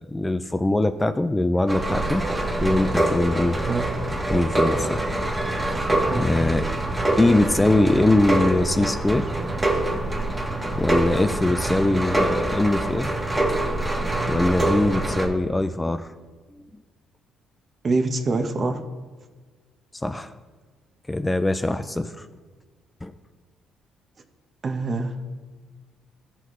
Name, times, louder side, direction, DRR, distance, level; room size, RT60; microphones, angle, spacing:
voice 1, 0.0-2.2 2.6-3.6 4.3-5.1 6.2-6.7 7.2-9.3 10.8-13.1 14.3-16.1 20.0-20.3 21.1-22.3 23.0-23.1, left 2 dB, 10° left, 9 dB, 0.4 m, -22 dB
sound 1, 1.7-15.3, right 1 dB, 15° right, 1.4 m, -25 dB
voice 2, 17.8-18.8 24.6-25.2, right 3 dB, 35° right, 7 dB, 0.9 m, -25 dB
15.5 x 5.7 x 3.1 m, 1.4 s
cardioid pair, 115°, 0 cm